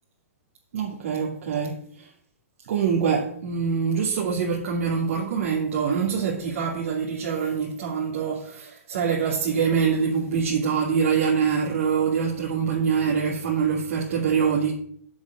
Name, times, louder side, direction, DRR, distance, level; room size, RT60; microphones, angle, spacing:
voice 1, 0.7-2.1 2.7-14.7, right 6 dB, 65° right, 2.7 m, -24 dB
7.7 x 7.4 x 8.2 m
hypercardioid pair, 125°, 8 cm